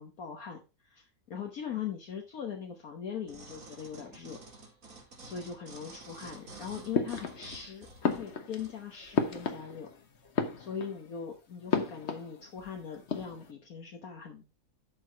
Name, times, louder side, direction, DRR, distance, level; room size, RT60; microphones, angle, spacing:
voice 1, 0.0-4.4 5.2-9.9 10.6-14.4, left 7 dB, 65° left, 2 dB, 1.6 m, -41 dB
sound 1, 3.3-8.8 9.3-9.4, right 2 dB, 60° right, 2.7 m, -50 dB
sound 2, 6.9-7.7 8.0-10.0 10.3-11.1 11.7-12.7 12.9-13.5, left 5 dB, 45° left, 1.3 m, -33 dB
11.5 x 4.7 x 4.5 m, 0.30 s
omnidirectional pair, 1.7 m